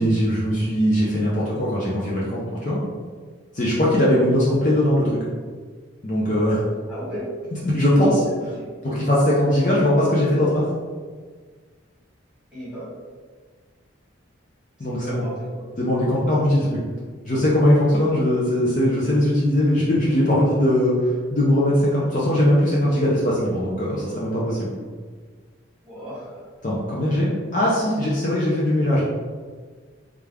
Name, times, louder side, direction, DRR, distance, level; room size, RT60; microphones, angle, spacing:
voice 1, 0.0-2.8 3.5-5.2 6.0-6.6 7.5-8.2 8.8-10.7 14.8-15.3 15.8-16.8 17.2-24.7 26.6-29.0, left 1 dB, 40° left, -6 dB, 0.5 m, -20 dB
voice 2, 6.9-7.3 8.0-8.7 12.5-12.9 14.9-15.6 25.8-26.3, equal, 5° right, -10 dB, 1.4 m, -35 dB
3.4 x 2.4 x 3.4 m, 1.5 s
head